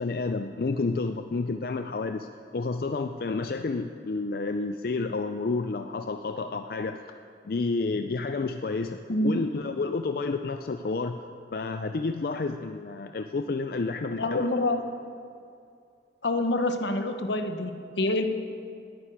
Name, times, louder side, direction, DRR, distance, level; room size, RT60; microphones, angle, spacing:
voice 1, 0.0-2.3 2.5-7.0 7.5-11.2 11.5-14.5, left 3 dB, 55° left, 7 dB, 0.4 m, -30 dB
voice 2, 14.2-14.9 16.2-18.2, left 2 dB, 80° left, 7 dB, 1.0 m, -27 dB
10.5 x 9.6 x 10.0 m, 2.4 s
head